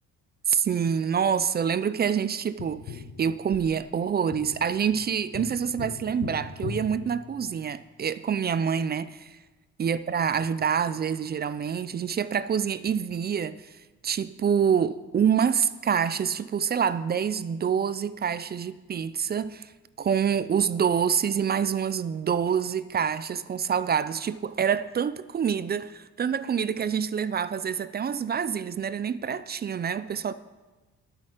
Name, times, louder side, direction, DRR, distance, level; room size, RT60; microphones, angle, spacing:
voice 1, 0.5-9.4 9.8-13.6 14.0-19.7 20.0-30.3, right 7 dB, 35° right, 0.4 m, -26 dB
Tap, 2.6-7.9 10.5-10.6, left 6 dB, 70° left, 1.3 m, -40 dB
12.0 x 8.6 x 5.0 m
cardioid pair, 90°, 30 cm